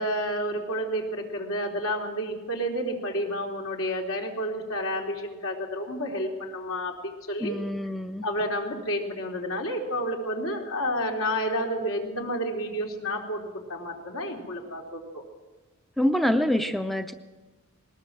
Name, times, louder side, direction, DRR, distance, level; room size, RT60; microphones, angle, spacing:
voice 1, 0.0-7.6 8.2-15.2, equal, 75° left, 1 dB, 3.6 m, -30 dB
voice 2, 7.4-8.2 16.0-17.1, left 1 dB, ahead, 8 dB, 0.6 m, -26 dB
20.5 x 19.0 x 7.5 m, 1.2 s
head